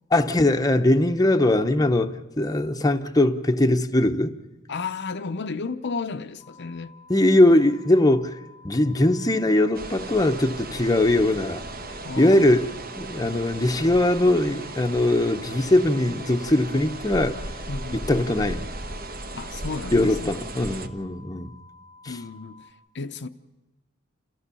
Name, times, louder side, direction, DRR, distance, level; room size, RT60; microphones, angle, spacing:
voice 1, 0.1-4.4 7.1-8.3 8.6-11.6 12.2-12.7 13.0-17.4 17.9-18.7 19.9-21.5 22.0-22.2, left 1 dB, 20° left, 0.9 m, -21 dB
voice 2, 4.7-6.9 12.0-12.5 17.7-18.0 19.3-20.3 22.1-22.7 22.9-23.3, left 4 dB, 60° left, 0.7 m, -33 dB
sound 1, 6.4-22.7, left 3 dB, 60° right, 2.0 m, -51 dB
sound 2, 9.7-20.9, right 2 dB, 45° right, 1.2 m, -36 dB
28.0 x 15.0 x 6.9 m
head